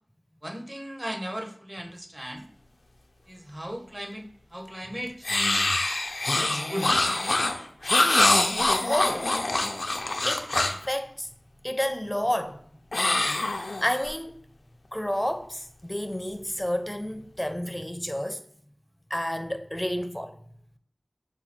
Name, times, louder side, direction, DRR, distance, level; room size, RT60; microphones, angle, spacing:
voice 1, 0.4-2.5 3.3-5.8 6.4-7.0, equal, 25° right, 0.7 m, -36 dB
sound 1, 5.2-10.9 12.9-14.1, left 2 dB, 80° left, 0.5 m, -24 dB
voice 2, 8.9-9.3 10.3-11.3 11.6-12.7 13.5-14.4 14.9-18.4 19.1-20.4, equal, 10° left, 0.5 m, -30 dB
5.4 x 2.3 x 4.2 m
wide cardioid pair, 45°, 0 cm